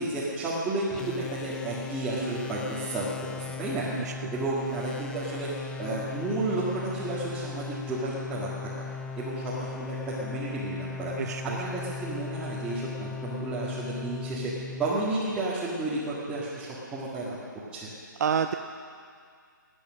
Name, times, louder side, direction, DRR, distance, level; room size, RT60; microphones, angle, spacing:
voice 1, 0.0-3.1 3.3-3.9 4.3-8.8 9.2-14.5 14.8-17.4 17.7-17.9, right 2 dB, 10° right, -10 dB, 2.0 m, -32 dB
sound 1, 0.9-15.5, left 5 dB, 5° left, 0.3 m, -38 dB
voice 2, 11.2-11.6 18.2-18.5, right 7 dB, 55° right, 7 dB, 0.6 m, -27 dB
17.5 x 9.0 x 6.4 m, 2.1 s
hypercardioid pair, 150°, 11 cm